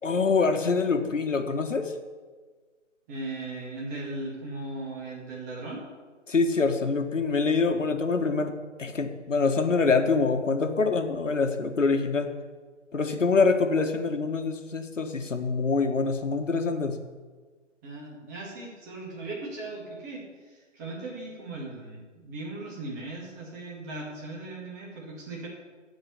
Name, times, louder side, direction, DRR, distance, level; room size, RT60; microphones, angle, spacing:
voice 1, 0.0-1.9 6.3-8.5 8.8-12.3 12.9-17.0, left 4 dB, 75° left, 6 dB, 1.6 m, -25 dB
voice 2, 3.1-5.8 13.1-13.2 17.8-25.5, right 2 dB, 15° right, -4 dB, 2.0 m, -38 dB
14.5 x 5.1 x 8.4 m, 1.4 s
figure-of-eight pair, 160°, 37 cm